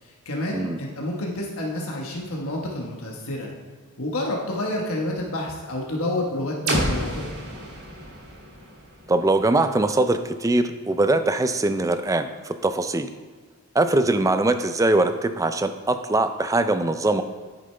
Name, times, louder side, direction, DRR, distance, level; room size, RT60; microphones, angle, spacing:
voice 1, 0.0-3.5 4.0-7.4, left 1 dB, 70° left, -2 dB, 1.3 m, -29 dB
sound 1, 6.7-10.5, right 1 dB, 90° right, 2.7 m, -31 dB
voice 2, 9.1-13.1 13.7-17.2, right 2 dB, 15° right, 10 dB, 0.4 m, -22 dB
10.0 x 9.0 x 3.3 m, 1.5 s
head